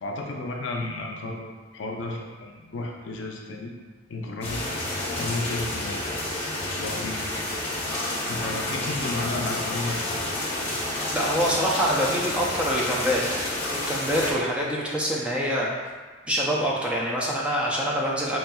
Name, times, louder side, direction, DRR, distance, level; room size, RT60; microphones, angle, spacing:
voice 1, 0.0-3.7 4.1-4.6 5.2-6.2 6.8-7.7 8.3-10.8, left 2 dB, 70° left, 1 dB, 0.5 m, -33 dB
sound 1, 4.4-14.3, left 1 dB, 30° left, 0.9 m, -30 dB
voice 2, 11.1-13.2 13.7-15.7 16.3-18.4, equal, 5° right, -5 dB, 0.4 m, -25 dB
5.4 x 2.7 x 2.3 m, 1.4 s
head